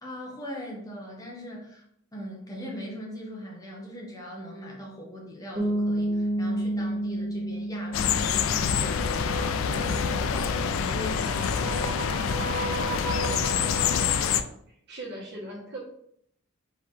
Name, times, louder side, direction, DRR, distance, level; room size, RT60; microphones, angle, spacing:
voice 1, 0.0-1.8 2.1-14.0, equal, 15° left, -2 dB, 0.8 m, -41 dB
Bass guitar, 5.6-9.3, right 1 dB, 15° right, 0.8 m, -30 dB
sound 1, 7.9-14.4, left 7 dB, 70° left, 0.3 m, -26 dB
sound 2, 8.5-14.2, right 2 dB, 80° right, 1.0 m, -36 dB
voice 2, 14.9-15.8, right 1 dB, 50° right, -3 dB, 1.4 m, -38 dB
4.6 x 2.8 x 3.6 m, 0.70 s
head